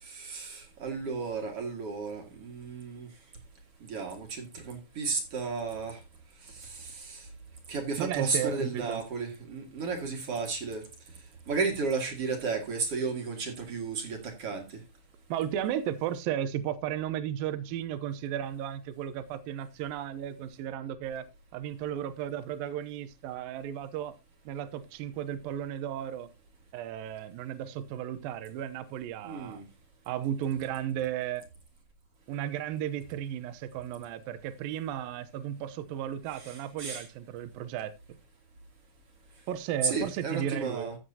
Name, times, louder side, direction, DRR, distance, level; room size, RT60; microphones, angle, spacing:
voice 1, 0.0-3.1 3.8-6.0 6.4-7.3 7.7-10.8 11.5-14.8 29.2-29.7 36.4-37.1 39.8-41.0, right 4 dB, 45° right, 2.5 m, -33 dB
voice 2, 8.0-9.0 15.3-21.3 21.5-24.2 24.5-26.3 26.7-29.6 30.1-31.5 32.3-37.9 39.5-40.9, right 10 dB, 80° right, 2.5 m, -34 dB
14.0 x 8.0 x 2.8 m
omnidirectional pair, 4.2 m